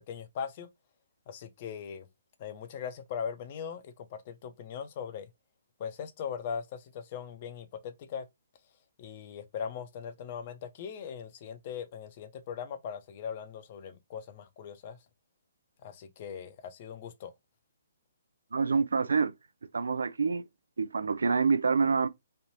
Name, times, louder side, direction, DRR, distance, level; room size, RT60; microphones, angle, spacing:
voice 1, 0.1-0.7 1.3-2.1 2.4-5.3 5.8-8.3 9.0-15.0 15.8-17.3, left 7 dB, 40° left, 0.7 m, -40 dB
voice 2, 18.5-19.3 19.7-20.4 20.8-22.1, right 5 dB, 75° right, 0.4 m, -26 dB
3.2 x 2.5 x 2.9 m
figure-of-eight pair, 135°, 0 cm